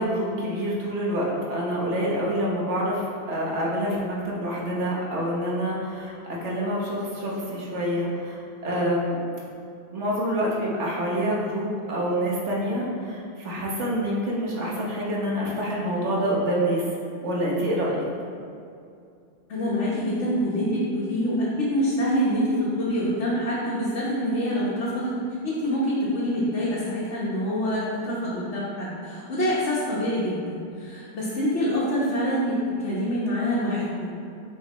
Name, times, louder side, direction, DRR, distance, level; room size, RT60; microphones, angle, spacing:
voice 1, 0.0-3.0 3.3-6.1 6.4-9.2 9.9-16.8 17.2-18.1, equal, 80° right, -4 dB, 1.4 m, -27 dB
voice 2, 19.5-25.1 25.4-34.1, equal, 80° left, -9 dB, 1.4 m, -26 dB
6.6 x 5.2 x 3.0 m, 2.5 s
omnidirectional pair, 1.2 m